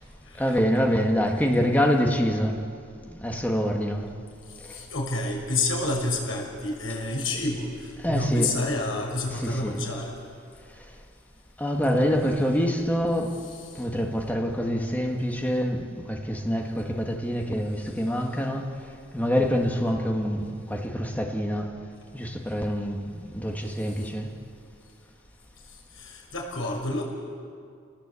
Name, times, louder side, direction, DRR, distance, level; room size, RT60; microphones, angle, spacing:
voice 1, 0.4-2.6 3.1-4.1 4.7-4.8 8.0-8.5 9.3-9.8 11.6-13.3 13.8-18.9 19.1-21.7 22.1-24.3, equal, 10° left, 2 dB, 1.9 m, -26 dB
voice 2, 4.7-7.7 8.1-10.1 26.0-27.0, left 2 dB, 75° left, -1 dB, 6.1 m, -28 dB
29.0 x 19.0 x 8.5 m, 2.3 s
head